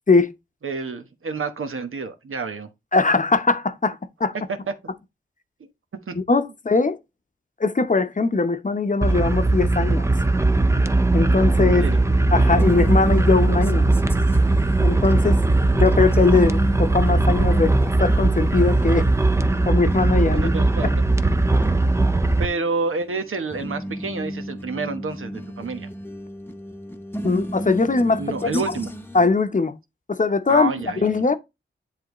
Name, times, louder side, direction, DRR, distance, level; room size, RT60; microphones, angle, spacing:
voice 1, 0.6-2.7 6.1-6.2 11.6-12.0 20.4-20.9 21.6-21.9 22.4-25.9 28.2-28.9 30.5-31.2, right 4 dB, 85° right, 1.1 m, -29 dB
voice 2, 2.9-4.3 6.1-7.0 7.6-10.1 11.1-11.9 12.3-13.8 14.8-15.4 15.7-19.1 19.7-20.5 27.2-28.2 28.5-28.6 29.1-29.7 30.1-30.7 31.0-31.3, left 4 dB, 40° left, 0.8 m, -20 dB
sound 1, 9.0-22.5, right 2 dB, 15° right, 0.5 m, -19 dB
sound 2, 11.7-29.3, equal, 10° left, 0.9 m, -34 dB
10.0 x 3.4 x 3.0 m
wide cardioid pair, 80°, 21 cm